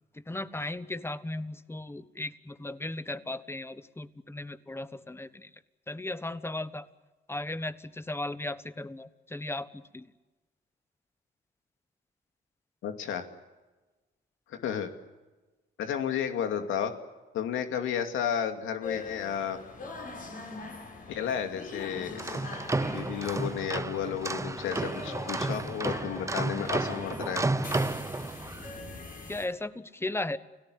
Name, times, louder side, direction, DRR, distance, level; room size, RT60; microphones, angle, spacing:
voice 1, 0.3-5.5 5.9-6.8 7.3-10.0 29.3-30.4, left 2 dB, 10° left, 13 dB, 1.3 m, -36 dB
voice 2, 12.8-13.3 14.5-14.9 15.8-16.9 17.3-19.6 21.1-22.4 22.8-27.5, left 8 dB, 85° left, 6 dB, 2.5 m, -32 dB
sound 1, 18.8-29.5, left 3 dB, 45° left, 7.4 m, -43 dB
sound 2, 22.0-28.7, right 2 dB, 15° right, 1.0 m, -32 dB
29.5 x 17.5 x 8.0 m, 1.2 s
cardioid pair, 90°, 20 cm